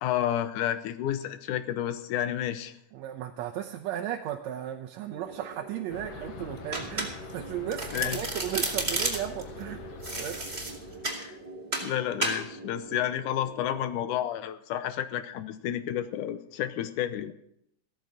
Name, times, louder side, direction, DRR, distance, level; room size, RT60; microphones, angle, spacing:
voice 1, 0.0-2.8 7.9-8.2 11.1-11.3 11.8-17.3, left 11 dB, 85° left, 11 dB, 2.3 m, -30 dB
voice 2, 2.9-9.8 10.2-10.4, right 11 dB, 75° right, 4 dB, 1.9 m, -35 dB
sound 1, 5.1-14.2, right 3 dB, 35° right, 2.9 m, -46 dB
sound 2, 5.9-11.1, left 6 dB, 60° left, 2.3 m, -44 dB
Domestic sounds home sounds, 6.7-7.4 7.7-9.4 10.0-11.2 11.7-11.9 12.2-12.4, right 2 dB, 15° right, 2.1 m, -31 dB
16.0 x 13.5 x 5.0 m, 0.74 s
omnidirectional pair, 3.5 m